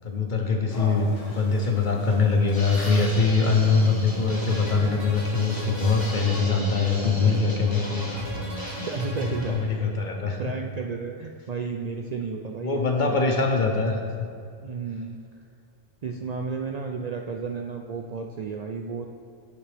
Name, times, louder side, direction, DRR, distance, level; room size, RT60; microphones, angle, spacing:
voice 1, 0.0-8.1 9.5-10.5 12.6-14.0, left 4 dB, 45° left, 3 dB, 0.8 m, -23 dB
sound 1, 0.7-6.3, left 1 dB, 85° left, 1.8 m, -42 dB
sound 2, 2.5-9.5, equal, 20° left, 1.3 m, -36 dB
sound 3, 4.1-10.0, equal, 35° right, 2.3 m, -39 dB
voice 2, 8.8-9.9 10.4-13.2 14.6-15.2 16.0-19.1, right 5 dB, 85° right, 2 dB, 0.3 m, -33 dB
9.4 x 7.2 x 3.4 m, 2.4 s
omnidirectional pair, 1.3 m